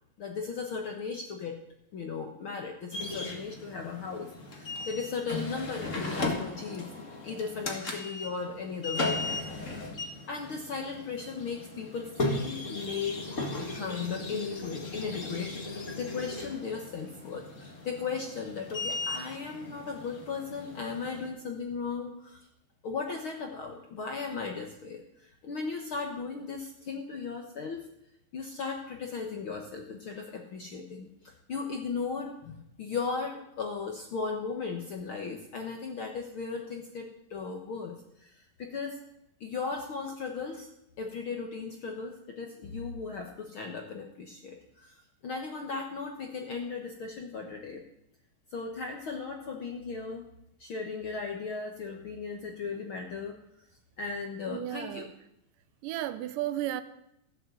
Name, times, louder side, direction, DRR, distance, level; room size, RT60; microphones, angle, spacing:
voice 1, 0.2-1.6 1.9-6.9 7.2-9.8 10.3-13.2 13.6-22.5 22.8-27.9 28.3-39.0 39.4-40.7 41.0-47.8 48.5-50.3 50.6-53.4 54.0-55.1, left 5 dB, 60° left, 2 dB, 1.4 m, -37 dB
sound 1, 2.9-21.3, left 2 dB, 30° left, 1.5 m, -37 dB
voice 2, 54.5-55.1 55.8-56.8, right 13 dB, 75° right, 13 dB, 2.2 m, -33 dB
15.0 x 8.2 x 7.8 m, 0.79 s
omnidirectional pair, 3.9 m